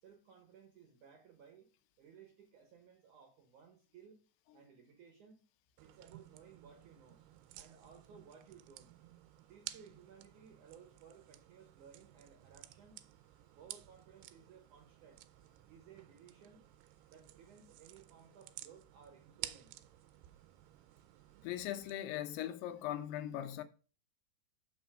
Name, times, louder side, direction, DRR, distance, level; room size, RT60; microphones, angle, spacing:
voice 1, 0.0-1.7 2.0-4.2 4.5-5.4 5.8-7.2 7.6-8.9 9.4-13.0 13.6-15.2 15.7-16.6 17.1-19.7, right 7 dB, 65° right, 2.1 m, -59 dB
sound 1, 5.8-21.9, right 15 dB, 80° right, 2.4 m, -53 dB
voice 2, 21.4-23.6, left 12 dB, 80° left, 2.6 m, -39 dB
7.1 x 6.0 x 4.8 m
omnidirectional pair, 4.9 m